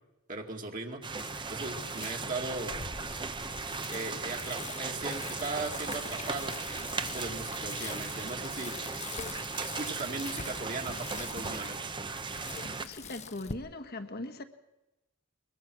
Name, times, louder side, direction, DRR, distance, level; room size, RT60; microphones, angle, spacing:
voice 1, 0.3-1.0 1.5-2.7 3.9-8.8 9.6-12.1, right 3 dB, 40° right, 2.2 m, -38 dB
sound 1, 1.0-12.8, right 4 dB, 25° right, 0.9 m, -37 dB
Bicycle, 1.2-13.5, left 5 dB, 35° left, 0.9 m, -44 dB
voice 2, 12.7-14.4, left 2 dB, 50° left, 1.6 m, -40 dB
22.0 x 22.0 x 6.2 m
head